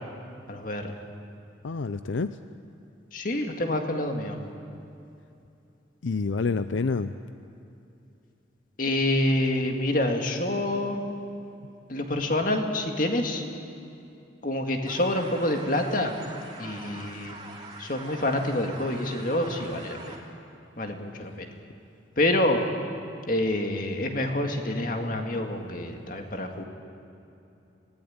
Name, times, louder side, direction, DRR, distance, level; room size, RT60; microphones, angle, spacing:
voice 1, 0.5-0.9 3.1-4.4 8.8-11.0 11.9-13.4 14.4-16.1 16.6-17.4 17.8-20.1 20.8-21.5 22.2-22.6 23.3-26.6, left 1 dB, 45° left, 3 dB, 2.1 m, -27 dB
voice 2, 1.6-2.4 6.0-7.2, left 4 dB, 80° left, 11 dB, 0.5 m, -28 dB
sound 1, 14.9-20.2, right 3 dB, 25° right, 3.0 m, -44 dB
24.5 x 18.0 x 8.9 m, 2.8 s
head